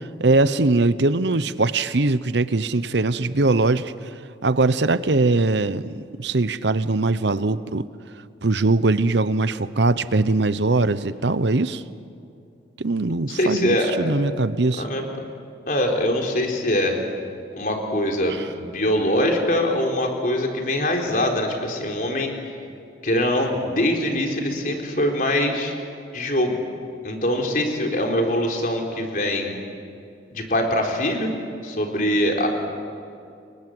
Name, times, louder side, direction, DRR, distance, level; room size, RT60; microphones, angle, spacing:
voice 1, 0.2-3.9 4.4-7.9 8.4-11.8 12.8-14.8, right 3 dB, 70° right, 14 dB, 0.9 m, -21 dB
voice 2, 13.3-13.9 14.8-15.1 15.7-17.0 17.5-22.3 23.0-25.7 26.1-26.6 27.0-29.5 30.3-31.3 31.6-32.5, left 1 dB, 45° left, 1 dB, 4.0 m, -23 dB
30.0 x 23.0 x 8.0 m, 2.5 s
head